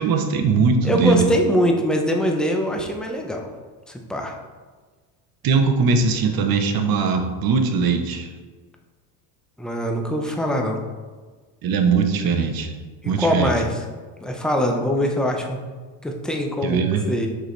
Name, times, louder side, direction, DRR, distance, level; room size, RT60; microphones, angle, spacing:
voice 1, 0.0-1.3 5.4-8.3 10.2-10.3 11.6-12.7 13.0-13.5 16.6-17.1, right 5 dB, 45° right, 6 dB, 0.9 m, -20 dB
voice 2, 0.8-3.5 3.9-4.4 9.6-10.8 13.0-13.8 14.2-15.6 16.0-16.8 17.1-17.3, equal, ahead, 1 dB, 0.6 m, -23 dB
6.5 x 5.0 x 3.2 m, 1.4 s
cardioid pair, 115°, 48 cm